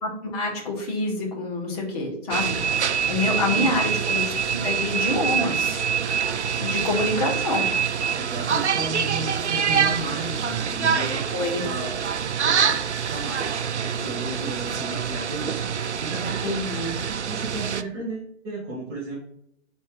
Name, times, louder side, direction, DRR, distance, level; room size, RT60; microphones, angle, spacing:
voice 1, 0.0-2.6 3.1-4.3 4.6-5.8 6.6-7.7 11.3-11.6 16.4-16.9, left 2 dB, 35° left, -1 dB, 2.2 m, -26 dB
sound 1, 2.3-17.8, right 7 dB, 70° right, 0.6 m, -25 dB
voice 2, 3.2-3.7 8.1-11.3 11.6-12.0 12.4-16.6 16.8-19.2, right 2 dB, 10° right, -6 dB, 0.6 m, -34 dB
5.5 x 4.4 x 6.2 m, 0.73 s
figure-of-eight pair, 135°, 36 cm